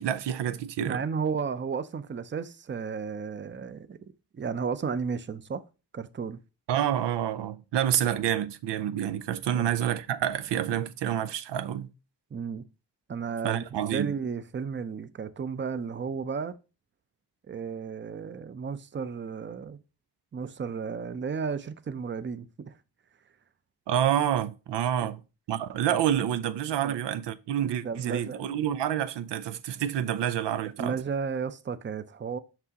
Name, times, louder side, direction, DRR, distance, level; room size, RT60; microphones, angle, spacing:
voice 1, 0.0-1.0 6.7-11.9 13.4-14.1 23.9-25.2 25.5-30.9, right 10 dB, 90° right, 0.5 m, -28 dB
voice 2, 0.8-5.6 5.9-6.4 9.5-9.7 12.3-12.6 13.1-13.6 13.9-16.6 17.5-19.8 20.3-22.8 25.0-25.1 26.8-27.0 27.7-28.5 30.8-32.4, right 6 dB, 30° right, 0.5 m, -33 dB
6.0 x 5.4 x 2.9 m
cardioid pair, 50°, 41 cm